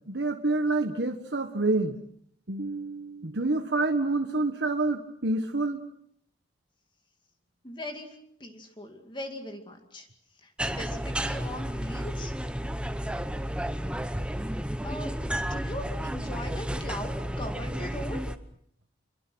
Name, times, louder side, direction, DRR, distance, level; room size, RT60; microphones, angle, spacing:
voice 1, 0.1-2.0 2.5-5.8, right 2 dB, 60° right, 5 dB, 1.4 m, -27 dB
voice 2, 7.6-10.1 10.4-12.3 14.8-18.2, left 1 dB, 25° left, 5 dB, 2.3 m, -40 dB
sound 1, 10.6-18.4, equal, 5° right, 1.0 m, -32 dB
27.0 x 23.0 x 6.3 m, 0.70 s
head